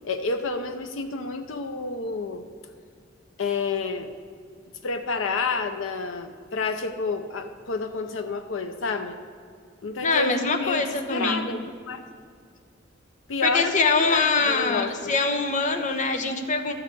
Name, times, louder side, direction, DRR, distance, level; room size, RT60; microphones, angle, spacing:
voice 1, 0.0-2.5 3.4-4.1 4.8-9.2 9.8-12.0 13.3-15.2, left 4 dB, 85° left, 7 dB, 0.6 m, -29 dB
voice 2, 10.0-11.5 13.4-16.7, left 3 dB, 40° left, 5 dB, 0.9 m, -24 dB
12.5 x 4.8 x 8.4 m, 2.2 s
head